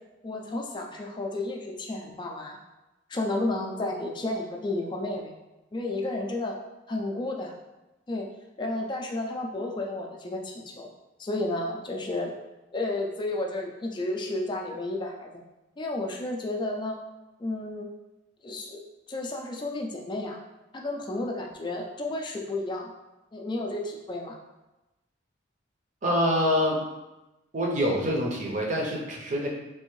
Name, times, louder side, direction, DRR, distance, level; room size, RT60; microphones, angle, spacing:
voice 1, 0.2-2.6 3.1-5.3 5.7-6.6 6.9-7.6 8.1-8.3 8.6-10.9 11.2-12.3 12.7-15.3 15.8-17.0 17.4-17.9 18.4-18.8 19.1-20.4 20.7-22.9 23.3-24.4, left 2 dB, 25° left, 1 dB, 0.4 m, -32 dB
voice 2, 26.0-26.8 27.5-29.5, equal, 40° right, -2 dB, 0.7 m, -25 dB
3.4 x 2.5 x 3.1 m, 1.0 s
head